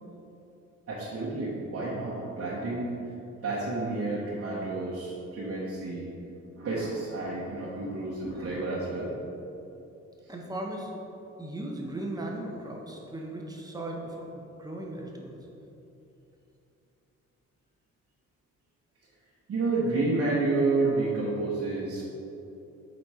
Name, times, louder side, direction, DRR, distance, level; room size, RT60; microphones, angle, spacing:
voice 1, 0.9-2.9 3.4-6.1 6.5-9.1 10.2-10.3 19.5-22.1, right 3 dB, 50° right, -7 dB, 1.1 m, -30 dB
voice 2, 10.3-10.9 11.4-15.4, right 1 dB, 10° right, -1 dB, 0.9 m, -37 dB
7.3 x 4.2 x 4.9 m, 2.9 s
cardioid pair, 135°, 30 cm